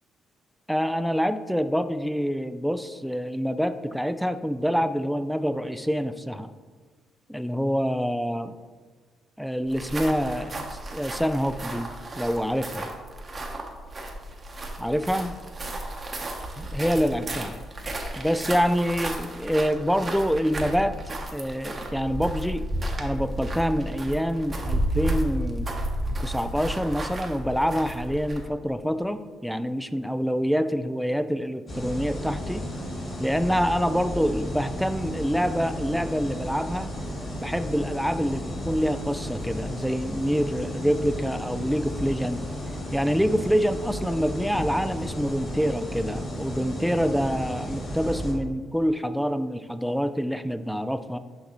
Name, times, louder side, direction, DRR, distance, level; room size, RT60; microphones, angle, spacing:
voice 1, 0.7-6.5 7.3-8.5 9.4-10.6 10.9-11.9 12.2-12.9 14.8-15.3 16.6-17.6 18.2-22.7 23.0-25.7 26.2-32.7 33.2-36.9 37.3-42.4 42.9-51.2, equal, ahead, 11 dB, 0.3 m, -26 dB
sound 1, 9.7-28.5, right 1 dB, 30° right, 0.9 m, -33 dB
sound 2, 31.7-48.3, equal, 45° left, 1.7 m, -34 dB
6.4 x 5.3 x 3.0 m, 1.5 s
cardioid pair, 90°, 0 cm